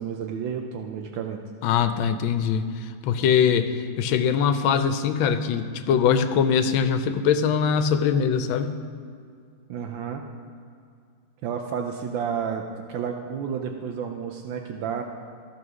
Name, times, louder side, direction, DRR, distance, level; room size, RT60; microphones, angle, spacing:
voice 1, 0.0-1.4 9.7-10.2 11.4-15.0, right 7 dB, 75° right, 4 dB, 1.3 m, -31 dB
voice 2, 1.6-2.7 3.0-3.7 4.0-8.8, left 7 dB, 80° left, 9 dB, 1.4 m, -22 dB
14.0 x 4.9 x 6.2 m, 2.3 s
omnidirectional pair, 2.2 m